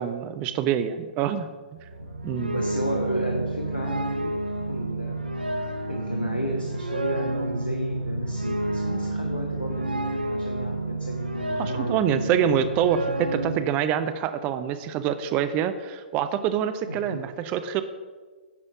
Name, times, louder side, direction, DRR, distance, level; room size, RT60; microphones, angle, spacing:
voice 1, 0.0-1.5 2.2-2.6 11.6-17.8, right 9 dB, 30° right, 11 dB, 0.5 m, -26 dB
sound 1, 1.8-13.6, right 2 dB, 80° right, 0.6 m, -30 dB
voice 2, 2.4-4.3 4.7-5.2 5.9-12.2 16.9-17.2, equal, 90° left, 0 dB, 1.1 m, -32 dB
9.9 x 4.3 x 6.0 m, 1.4 s
figure-of-eight pair, 115°, 5 cm